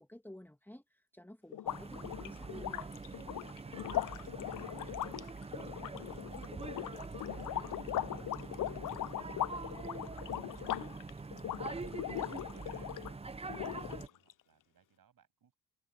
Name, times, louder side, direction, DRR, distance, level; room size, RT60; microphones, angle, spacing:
voice 1, 0.0-2.9, left 1 dB, 5° left, 2.5 m, -53 dB
sound 1, 1.5-13.1 13.5-14.3, left 13 dB, 60° left, 0.5 m, -39 dB
sound 2, 1.7-14.1, right 3 dB, 15° right, 0.6 m, -44 dB
voice 2, 3.4-13.0 13.2-15.6, right 8 dB, 60° right, 7.0 m, -69 dB
wide cardioid pair, 145°, 38 cm